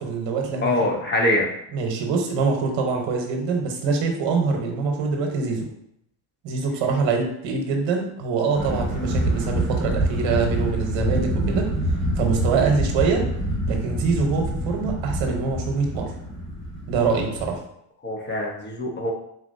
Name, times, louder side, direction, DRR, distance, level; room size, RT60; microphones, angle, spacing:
voice 1, 0.0-0.9 1.7-5.7 6.4-11.7 12.2-13.2 13.7-16.1 16.9-17.6, right 4 dB, 65° right, 2 dB, 1.1 m, -24 dB
voice 2, 0.6-1.5 18.0-19.1, left 1 dB, 20° left, 0 dB, 0.9 m, -23 dB
sound 1, 8.5-17.5, right 1 dB, ahead, 1.4 m, -26 dB
4.0 x 2.9 x 2.6 m, 0.77 s
supercardioid pair, 90°, 49 cm